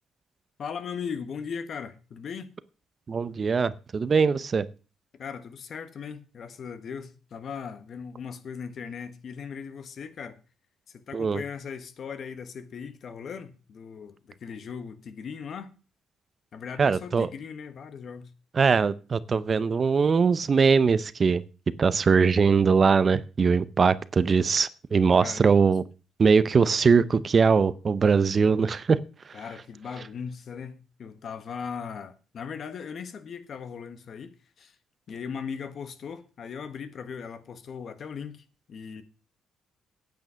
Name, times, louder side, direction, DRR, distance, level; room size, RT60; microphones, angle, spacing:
voice 1, 0.6-2.5 5.2-10.4 10.9-15.7 16.5-18.3 25.2-25.4 29.3-34.3 34.6-34.7 35.1-39.0, left 6 dB, 55° left, 1.3 m, -38 dB
voice 2, 3.1-4.7 11.1-11.4 16.8-17.3 18.6-21.4 21.8-25.8 26.2-29.0, right 5 dB, 40° right, 0.7 m, -21 dB
9.3 x 8.1 x 6.3 m
cardioid pair, 90°, 0 cm